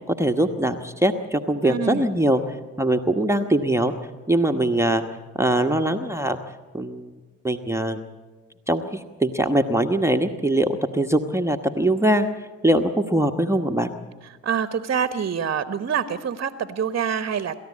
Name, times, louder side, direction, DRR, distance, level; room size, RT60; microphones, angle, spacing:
voice 1, 0.1-2.4 2.8-3.9 4.3-5.0 5.4-6.4 6.7-7.1 7.4-8.0 8.7-13.9, right 1 dB, 5° right, 8 dB, 1.1 m, -22 dB
voice 2, 1.6-2.1 14.4-17.6, right 7 dB, 30° right, 11 dB, 1.2 m, -26 dB
28.0 x 13.5 x 8.6 m, 1.4 s
hypercardioid pair, 55°, 41 cm